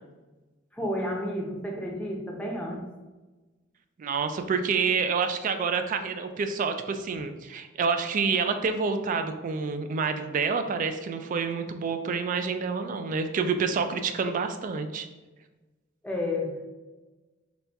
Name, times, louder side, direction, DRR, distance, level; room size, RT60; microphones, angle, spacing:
voice 1, 0.7-2.8 16.0-16.7, left 1 dB, 5° left, -1 dB, 0.6 m, -31 dB
voice 2, 4.0-15.1, right 5 dB, 40° right, 8 dB, 0.3 m, -28 dB
4.2 x 2.3 x 3.3 m, 1.2 s
head